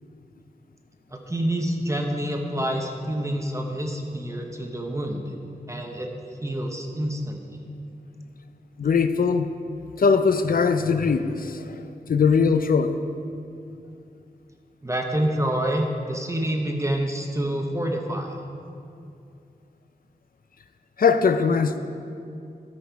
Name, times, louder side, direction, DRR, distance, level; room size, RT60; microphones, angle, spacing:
voice 1, 1.1-5.3 5.7-7.6 14.8-18.4, right 1 dB, 20° right, 2 dB, 0.8 m, -27 dB
voice 2, 8.8-9.5 10.0-13.0 21.0-21.8, left 5 dB, 65° left, 10 dB, 0.5 m, -21 dB
13.0 x 5.1 x 4.6 m, 2.5 s
wide cardioid pair, 100°, 16 cm